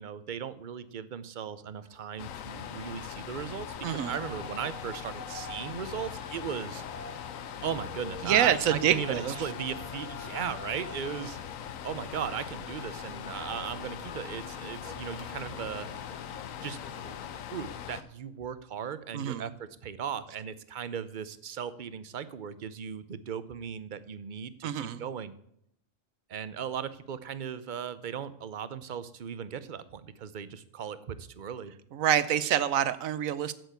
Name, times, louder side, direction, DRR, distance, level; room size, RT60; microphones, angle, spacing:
voice 1, 0.0-6.8 7.6-11.4 11.8-15.9 16.6-25.3 26.3-31.7, right 8 dB, 45° right, 14 dB, 0.7 m, -37 dB
sound 1, 1.8-17.3, left 2 dB, 35° left, 1.6 m, -48 dB
sound 2, 2.2-18.0, left 9 dB, 80° left, 1.2 m, -41 dB
voice 2, 8.2-9.3 19.1-19.5 24.6-25.0 31.9-33.5, right 10 dB, 80° right, 16 dB, 1.1 m, -26 dB
8.3 x 8.1 x 8.0 m, 0.73 s
omnidirectional pair, 1.4 m